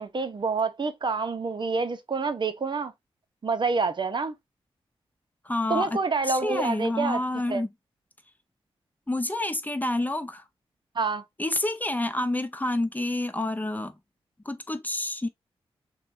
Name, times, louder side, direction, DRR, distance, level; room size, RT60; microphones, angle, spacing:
voice 1, 0.0-2.9 3.4-4.3 5.7-7.2 7.5-7.6 11.0-11.2, right 4 dB, 45° right, 0.7 m, -27 dB
voice 2, 5.4-6.0 6.3-7.7 9.1-10.4 11.4-13.9 14.5-15.3, left 1 dB, 15° left, 0.6 m, -28 dB
6.5 x 2.3 x 2.6 m
cardioid pair, 55°, 11 cm